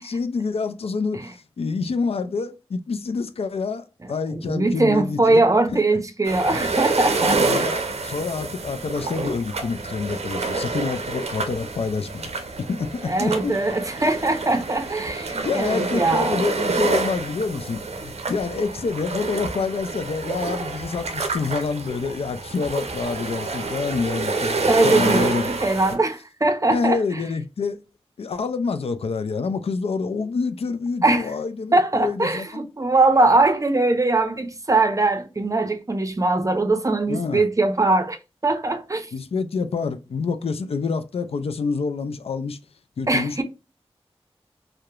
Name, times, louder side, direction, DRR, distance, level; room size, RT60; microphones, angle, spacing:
voice 1, 0.0-5.4 5.7-6.0 6.4-6.7 7.5-12.3 12.6-13.6 15.2-25.6 25.9-26.0 26.7-27.8 28.2-32.7 37.1-37.5 39.1-42.6 43.0-43.4, left 4 dB, 70° left, 0.4 m, -27 dB
voice 2, 4.3-7.7 13.1-16.4 24.7-27.0 31.0-31.3 31.7-38.2 38.4-39.1 43.1-43.4, right 2 dB, 30° right, 0.5 m, -21 dB
sound 1, 6.2-26.0, right 3 dB, 85° right, 0.5 m, -28 dB
2.8 x 2.1 x 2.3 m
cardioid pair, 50°, 11 cm